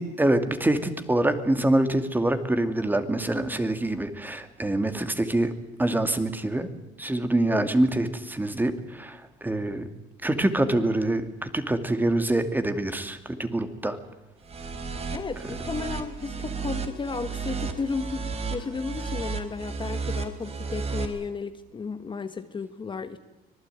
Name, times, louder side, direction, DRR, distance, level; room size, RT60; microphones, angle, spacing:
voice 1, 0.0-5.5 5.8-6.7 7.0-9.9 10.2-14.0, right 1 dB, 10° right, 8 dB, 2.5 m, -25 dB
sound 1, 14.4-21.1, right 5 dB, 35° right, 4.2 m, -33 dB
voice 2, 15.1-23.2, left 4 dB, 30° left, 9 dB, 1.5 m, -33 dB
25.5 x 19.5 x 9.2 m, 1.0 s
cardioid pair, 110°, 17 cm